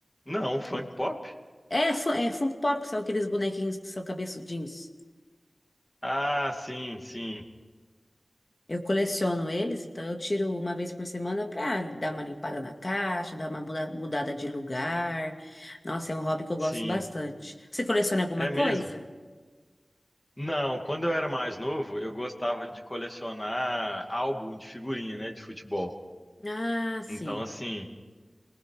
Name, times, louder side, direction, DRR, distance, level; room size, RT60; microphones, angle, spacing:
voice 1, 0.3-1.4 6.0-7.4 16.6-17.0 18.4-18.9 20.4-25.9 27.1-27.9, equal, 20° left, 3 dB, 2.5 m, -32 dB
voice 2, 1.7-4.9 8.7-19.0 26.4-27.4, left 1 dB, 45° left, 3 dB, 2.3 m, -30 dB
29.0 x 19.5 x 4.9 m, 1.4 s
wide cardioid pair, 60°, 0 cm